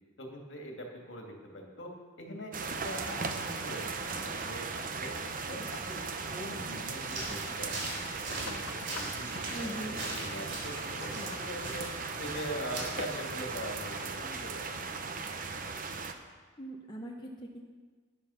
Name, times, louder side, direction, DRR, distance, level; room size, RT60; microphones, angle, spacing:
voice 1, 0.2-1.9 2.2-5.1 5.5-15.2, equal, 60° left, 1 dB, 2.2 m, -43 dB
sound 1, 2.5-16.1, right 4 dB, 40° right, 0.8 m, -37 dB
sound 2, 6.8-13.1, right 2 dB, 65° right, 3.7 m, -42 dB
sound 3, 8.4-14.1, left 5 dB, 85° left, 0.7 m, -49 dB
voice 2, 9.5-10.0 16.6-17.6, right 1 dB, 20° left, -1 dB, 0.9 m, -40 dB
12.0 x 10.5 x 5.7 m, 1.5 s
head